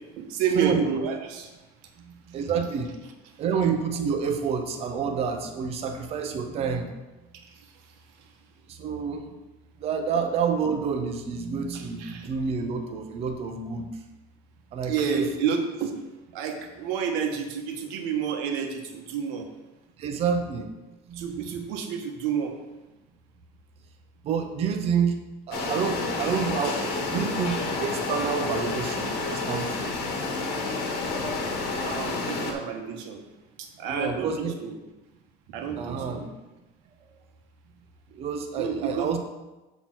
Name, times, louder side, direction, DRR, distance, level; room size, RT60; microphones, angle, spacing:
voice 1, 0.2-1.5 7.3-8.3 11.7-12.3 14.9-16.0 16.3-19.5 21.1-22.6 31.8-33.2 33.6-34.7 35.5-36.2 38.5-39.1, right 6 dB, 65° right, 4 dB, 1.2 m, -30 dB
voice 2, 2.0-3.0 3.4-6.9 8.7-9.3 9.8-13.9 14.7-15.3 20.0-20.7 21.1-21.6 24.2-25.2 25.5-29.9 30.6-30.8 33.9-34.5 35.6-36.3 38.1-39.2, right 6 dB, 30° right, 5 dB, 0.7 m, -28 dB
sound 1, 25.5-32.5, left 3 dB, 55° left, 1.4 m, -29 dB
6.9 x 4.4 x 6.0 m, 1.1 s
cardioid pair, 180°, 20 cm